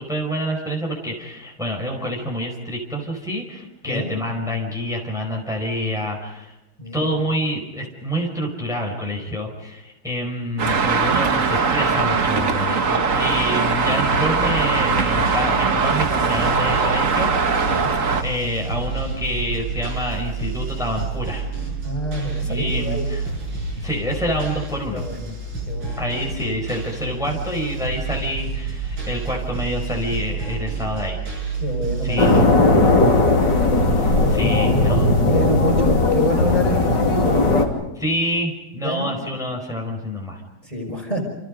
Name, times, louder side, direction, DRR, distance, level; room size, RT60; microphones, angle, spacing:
voice 1, 0.0-6.5 6.9-17.8 18.2-21.4 22.4-23.2 23.8-25.0 26.0-31.3 32.0-32.5 33.9-35.1 37.9-40.4, equal, ahead, -1 dB, 4.9 m, -27 dB
voice 2, 3.8-4.2 6.8-7.1 17.6-17.9 21.8-23.1 24.9-25.4 25.7-26.0 31.6-33.1 34.2-34.9 35.2-37.5 38.8-39.1 40.6-41.2, equal, 15° left, 2 dB, 5.4 m, -27 dB
Traffic noise roadway noise, 10.6-18.2, right 5 dB, 45° right, 1.6 m, -20 dB
sound 1, 14.1-32.4, right 4 dB, 85° right, 7.5 m, -29 dB
sound 2, 32.2-37.6, left 2 dB, 65° left, 3.7 m, -17 dB
29.0 x 29.0 x 5.3 m, 0.96 s
omnidirectional pair, 2.1 m